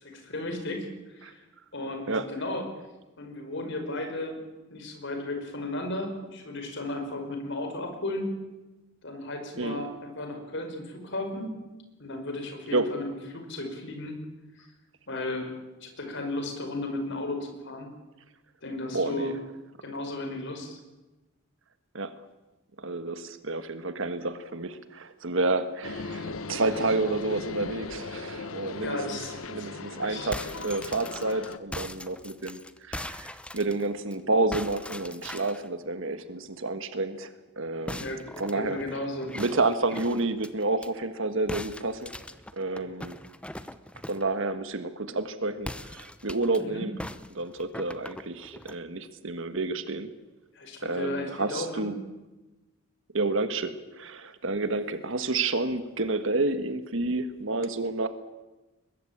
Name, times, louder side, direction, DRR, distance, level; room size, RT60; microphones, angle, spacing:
voice 1, 0.0-1.4 1.7-2.6 3.2-4.4 4.7-8.4 9.0-11.5 12.0-14.2 14.6-14.7 15.1-15.5 15.8-17.9 18.6-19.3 19.8-20.8 28.8-30.5 37.9-38.2 38.5-39.4 46.6-46.9 50.5-51.9, left 2 dB, 60° left, 5 dB, 5.3 m, -35 dB
voice 2, 18.9-19.3 21.9-22.1 22.8-29.2 29.5-38.1 38.4-38.8 39.3-42.1 42.5-43.2 44.1-46.9 47.3-50.1 50.8-52.0 53.1-58.1, right 2 dB, 65° right, 10 dB, 1.5 m, -30 dB
sound 1, 25.8-31.6, left 3 dB, 75° left, 1.2 m, -38 dB
sound 2, 30.1-34.1 34.5-35.7 37.9-40.9 41.5-44.3 45.6-46.6 47.0-48.8, left 1 dB, 5° left, 0.8 m, -40 dB
22.0 x 21.5 x 8.8 m, 1.1 s
head